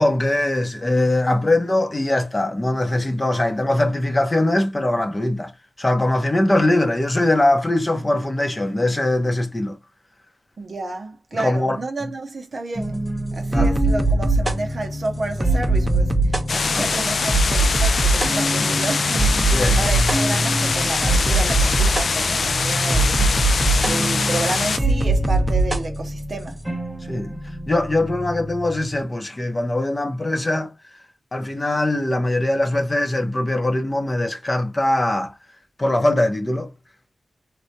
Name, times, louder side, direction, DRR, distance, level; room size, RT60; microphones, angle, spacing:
voice 1, 0.0-5.5 5.8-9.8 11.3-11.8 13.5-13.7 16.7-16.9 18.6-18.7 19.5-19.9 23.2-23.3 27.1-27.3 27.7-30.7 31.3-35.3 35.8-36.7, left 1 dB, 30° left, 0.7 m, -21 dB
voice 2, 10.6-23.6 23.9-26.6, right 2 dB, 60° right, 0.6 m, -31 dB
sound 1, 12.8-29.0, right 2 dB, 15° right, 0.6 m, -22 dB
sound 2, 16.5-24.8, left 4 dB, 70° left, 0.4 m, -23 dB
3.3 x 2.1 x 2.6 m
cardioid pair, 55°, 0 cm